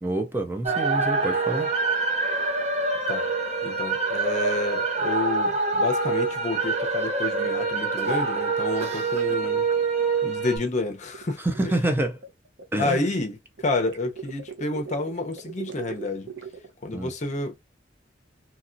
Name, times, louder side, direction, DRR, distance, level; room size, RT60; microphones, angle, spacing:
voice 1, 0.0-1.7 11.4-12.2 12.7-13.0 16.9-17.1, right 1 dB, 10° right, 0.4 m, -27 dB
sound 1, 0.6-10.6, right 3 dB, 40° right, 0.8 m, -25 dB
voice 2, 3.6-9.7 10.2-11.4 12.8-16.3 16.8-17.6, left 2 dB, 40° left, 0.7 m, -29 dB
sound 2, 11.1-13.0 13.6-16.7, right 6 dB, 85° right, 0.7 m, -40 dB
2.9 x 2.7 x 2.5 m
head